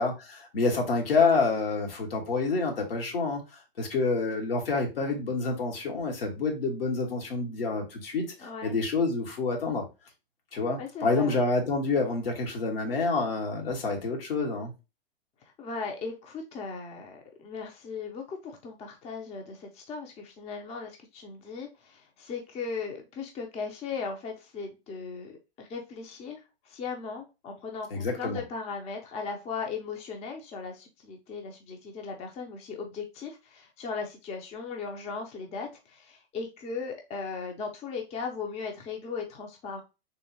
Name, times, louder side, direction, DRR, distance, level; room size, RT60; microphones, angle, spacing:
voice 1, 0.0-3.4 3.8-8.3 8.6-9.8 10.5-14.7 27.9-28.4, left 4 dB, 70° left, 1.4 m, -28 dB
voice 2, 8.4-8.8 10.8-11.4 15.6-39.8, left 5 dB, 20° left, 0.6 m, -38 dB
3.7 x 3.0 x 2.7 m
figure-of-eight pair, 100°, 30 cm